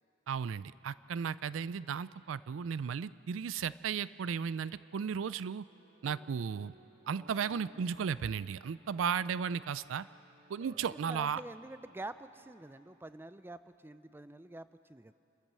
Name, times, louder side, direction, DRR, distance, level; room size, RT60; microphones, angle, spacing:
voice 1, 0.3-5.7 6.0-6.7 7.1-10.1 10.5-11.4, right 7 dB, 75° right, 17 dB, 0.4 m, -35 dB
sound 1, 4.5-12.9, right 2 dB, 55° right, 1.7 m, -61 dB
voice 2, 11.0-15.1, right 2 dB, 10° right, 12 dB, 0.5 m, -47 dB
28.0 x 13.5 x 7.5 m, 2.8 s
head